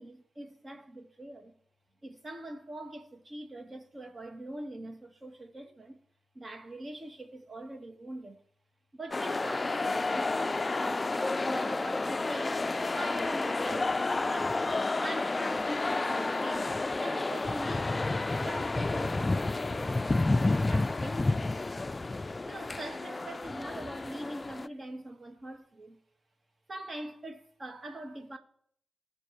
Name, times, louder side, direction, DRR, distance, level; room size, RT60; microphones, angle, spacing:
voice 1, 0.0-1.5 2.0-6.0 6.3-8.4 8.9-11.0 11.5-12.6 12.9-13.9 14.2-14.7 15.0-18.1 18.4-19.9 20.6-21.5 22.4-26.0 26.7-28.4, right 1 dB, 40° right, 2.3 m, -43 dB
sound 1, 9.1-24.7, left 2 dB, 30° left, 0.4 m, -30 dB
19.0 x 7.0 x 3.5 m
cardioid pair, 60°, 0 cm